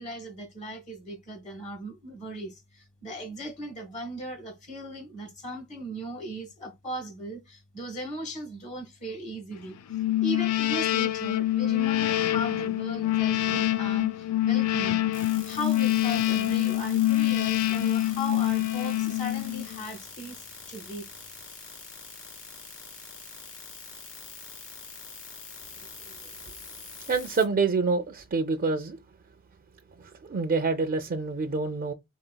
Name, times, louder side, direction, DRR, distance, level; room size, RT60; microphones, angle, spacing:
voice 1, 0.0-9.8 10.2-15.0 15.4-21.0, equal, 35° left, 1.2 m, -37 dB
sound 1, 9.9-19.8, left 14 dB, 80° left, 0.4 m, -26 dB
sound 2, 15.1-27.4, left 4 dB, 65° left, 1.8 m, -44 dB
voice 2, 27.1-29.0 30.0-31.9, right 4 dB, 40° right, 0.4 m, -27 dB
3.9 x 3.8 x 2.2 m
head